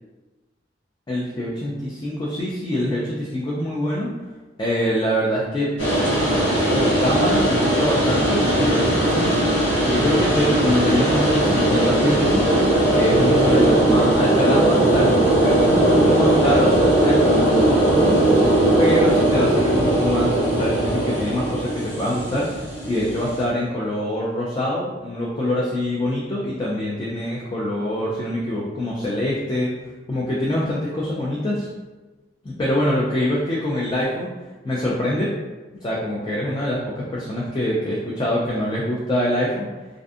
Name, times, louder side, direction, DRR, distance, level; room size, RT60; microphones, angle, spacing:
voice 1, 1.1-4.1 4.6-5.7 6.7-12.4 12.9-18.2 18.8-29.7 30.1-31.7 32.4-34.3 34.6-35.3 35.8-39.7, left 1 dB, 25° left, -5 dB, 0.4 m, -24 dB
sound 1, 5.8-23.4, right 1 dB, 75° left, 1.3 m, -19 dB
2.5 x 2.5 x 2.3 m, 1.2 s
head